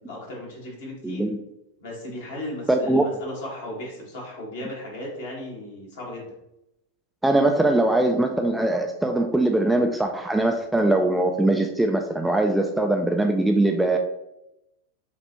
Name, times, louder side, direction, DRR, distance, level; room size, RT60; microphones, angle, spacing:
voice 1, 0.0-1.2 1.8-6.3, left 1 dB, 60° left, -3 dB, 1.6 m, -36 dB
voice 2, 1.0-1.4 2.7-3.1 7.2-14.0, right 2 dB, 5° right, 3 dB, 0.4 m, -21 dB
6.4 x 2.5 x 2.9 m, 0.87 s
figure-of-eight pair, 90°, 0 cm